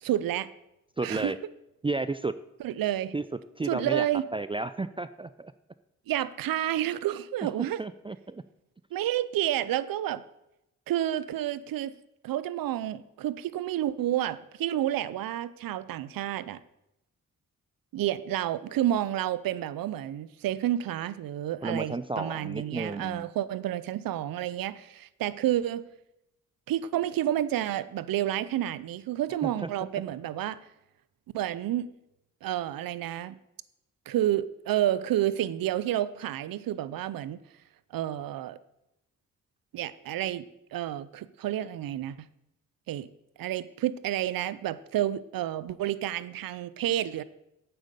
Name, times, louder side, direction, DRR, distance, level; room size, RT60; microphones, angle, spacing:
voice 1, 0.0-0.5 1.0-1.3 2.6-3.1 3.7-4.2 6.1-7.8 8.9-10.2 10.9-11.9 12.2-16.6 17.9-25.8 26.7-30.6 31.3-31.9 32.4-33.4 34.1-37.4 37.9-38.6 39.7-40.4 40.7-42.3 42.9-43.1 43.4-47.2, right 12 dB, 80° right, 17 dB, 0.6 m, -30 dB
voice 2, 1.0-1.4 1.8-2.3 3.1-3.3 3.6-4.1 4.3-5.5 7.4-7.5 7.8-8.4 21.6-23.3 29.4-29.7, right 3 dB, 15° right, 13 dB, 0.4 m, -32 dB
8.8 x 7.9 x 6.7 m, 0.87 s
cardioid pair, 60°, 34 cm